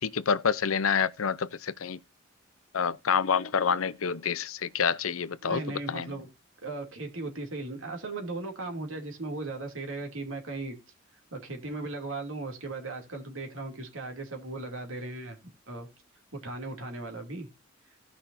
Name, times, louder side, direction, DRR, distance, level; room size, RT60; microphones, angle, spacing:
voice 1, 0.0-2.0 2.7-5.6 5.9-6.1, left 6 dB, 90° left, 0.7 m, -27 dB
voice 2, 5.4-6.3 6.6-10.8 11.3-15.9 16.3-17.5, right 2 dB, 70° right, 2.8 m, -37 dB
17.0 x 5.7 x 2.7 m
head